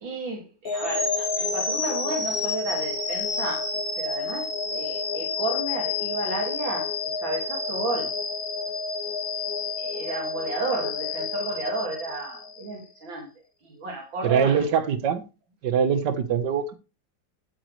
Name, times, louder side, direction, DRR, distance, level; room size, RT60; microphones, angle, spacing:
voice 1, 0.0-3.6 4.0-6.9 7.2-8.1 9.8-13.3 13.8-14.6, right 2 dB, 90° right, 3.1 m, -32 dB
sound 1, 0.6-12.8, left 4 dB, 50° left, 2.8 m, -29 dB
voice 2, 14.2-15.2 15.6-16.7, right 7 dB, 65° right, 1.9 m, -23 dB
12.5 x 8.6 x 3.2 m
omnidirectional pair, 2.0 m